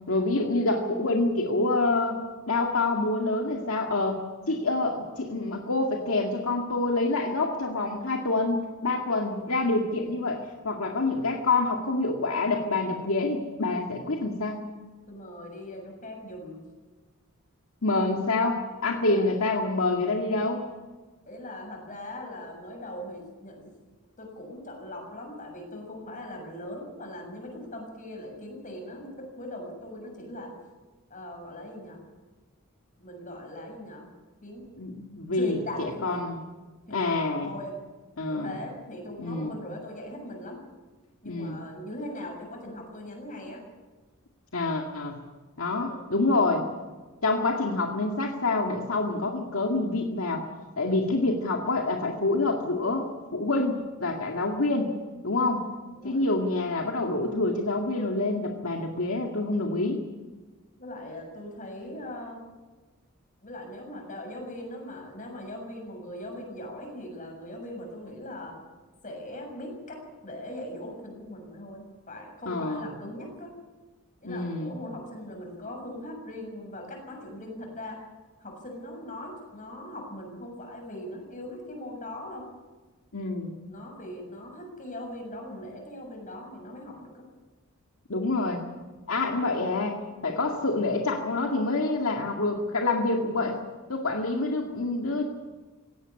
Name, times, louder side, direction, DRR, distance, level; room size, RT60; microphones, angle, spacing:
voice 1, 0.1-4.2 4.5-14.6 17.8-20.6 34.8-36.4 36.9-37.5 38.2-38.5 39.2-39.5 41.3-41.6 44.5-45.2 45.6-46.6 47.2-50.5 50.8-54.9 55.2-55.7 56.0-60.0 72.5-72.8 74.2-74.7 83.1-83.6 88.1-88.6 89.1-93.6 93.9-95.2, left 2 dB, 75° left, 2 dB, 2.1 m, -27 dB
voice 2, 15.1-16.6 19.1-19.3 21.3-23.7 24.2-30.5 31.1-32.0 33.0-34.1 34.4-34.7 35.3-36.2 36.9-37.7 38.3-40.6 41.2-43.6 45.7-46.0 56.0-56.2 60.8-62.4 63.4-68.5 69.0-73.5 74.2-78.0 78.4-82.5 83.7-87.2, left 1 dB, 40° left, 2 dB, 7.0 m, -40 dB
18.0 x 16.5 x 9.8 m, 1.3 s
head